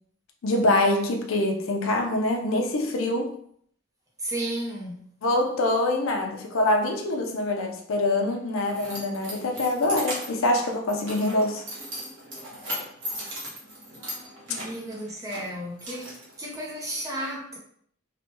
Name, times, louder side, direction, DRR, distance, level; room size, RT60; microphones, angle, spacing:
voice 1, 0.4-3.4 5.2-11.6, left 2 dB, 70° left, 0.5 m, -25 dB
voice 2, 4.2-5.0 14.5-17.6, right 1 dB, 15° right, 0.6 m, -33 dB
Keys jangling, 8.0-17.0, equal, 60° right, 1.1 m, -38 dB
3.2 x 2.2 x 2.9 m
head